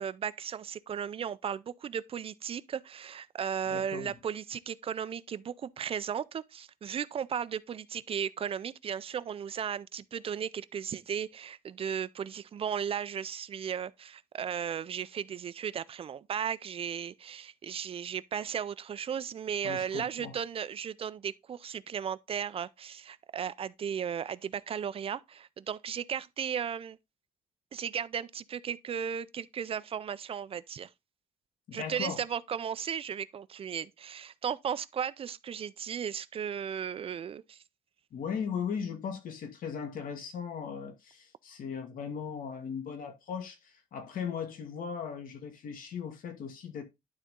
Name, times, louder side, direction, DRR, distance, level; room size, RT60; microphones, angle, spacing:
voice 1, 0.0-27.0 27.7-30.9 31.7-37.6, right 8 dB, 45° right, 0.4 m, -35 dB
voice 2, 3.7-4.1 19.6-20.4 31.7-32.2 38.1-46.8, left 7 dB, 85° left, 1.8 m, -38 dB
11.5 x 4.0 x 3.7 m
wide cardioid pair, 155°, 14 cm